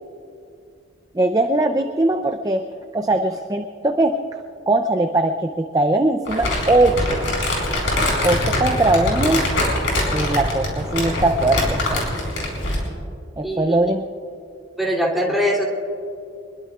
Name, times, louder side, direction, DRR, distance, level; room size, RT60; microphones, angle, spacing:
voice 1, 1.1-2.7 2.9-4.2 4.7-7.2 8.2-9.4 10.1-12.0 13.4-14.1, right 2 dB, 20° right, 6 dB, 0.5 m, -20 dB
Crumpling crinkling, 6.3-12.9, left 1 dB, 70° left, 4.9 m, -23 dB
voice 2, 13.4-13.8 14.8-15.6, equal, ahead, -4 dB, 2.9 m, -21 dB
25.0 x 21.5 x 2.4 m, 2.6 s
head